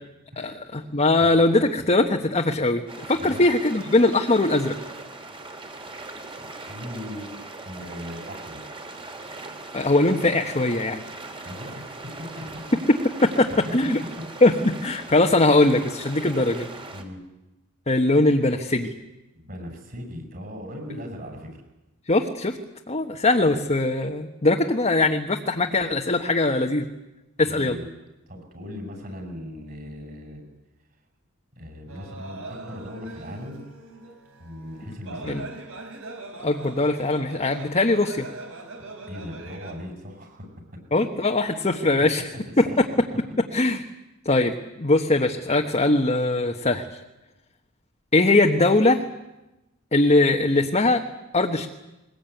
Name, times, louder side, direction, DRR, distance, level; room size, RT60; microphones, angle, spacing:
voice 1, 0.4-4.7 9.7-11.0 13.4-14.0 14.4-16.7 17.9-18.9 22.1-22.6 22.9-26.9 27.4-27.8 35.2-35.4 36.4-38.3 40.9-42.2 42.6-42.8 43.5-43.8 44.2-46.8 48.1-49.0 49.9-51.0 51.3-51.7, left 2 dB, 30° left, 2 dB, 1.3 m, -21 dB
voice 2, 1.2-1.7 3.1-3.4 6.4-7.3 7.6-8.7 11.4-12.6 14.0-14.2 16.9-17.2 19.3-21.5 27.5-27.9 28.3-30.4 31.5-33.6 34.4-35.5 38.8-40.5 42.6-42.9, left 1 dB, 45° right, 4 dB, 6.7 m, -38 dB
sound 1, 2.9-17.0, right 2 dB, 25° right, 2.9 m, -40 dB
sound 2, 31.9-39.7, right 2 dB, 70° right, 4.3 m, -41 dB
21.5 x 21.0 x 9.2 m, 1.0 s
head